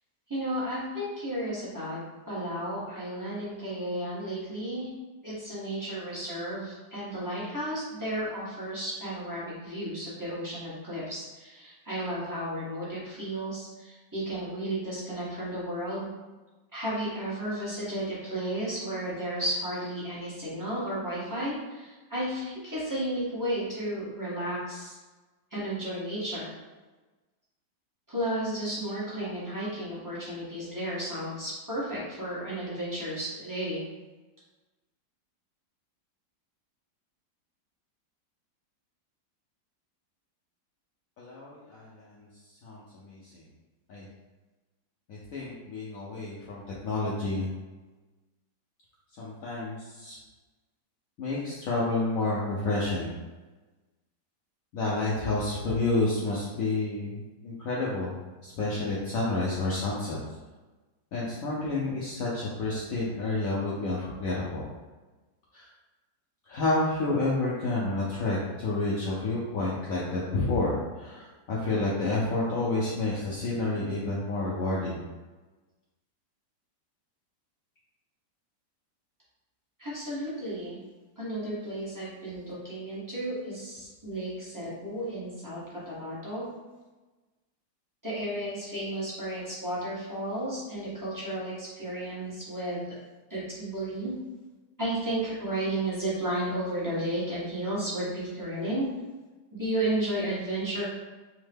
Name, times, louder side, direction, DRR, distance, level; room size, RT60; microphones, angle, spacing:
voice 1, 0.3-2.0 2.3-4.9 5.2-16.1 16.7-25.0 25.5-26.5 28.1-33.8 79.8-80.8 81.2-85.6 85.9-86.5 88.0-92.8 93.3-94.1 94.8-98.9 99.6-100.8, right 1 dB, 20° right, -10 dB, 0.6 m, -33 dB
voice 2, 41.2-42.3 42.6-43.4 43.9-44.1 45.1-47.5 49.2-50.2 51.2-53.1 54.7-58.2 58.4-60.2 61.1-64.6 65.5-65.7 66.5-75.0, left 2 dB, 80° left, -6 dB, 0.7 m, -29 dB
3.6 x 2.1 x 3.3 m, 1.2 s
omnidirectional pair, 2.0 m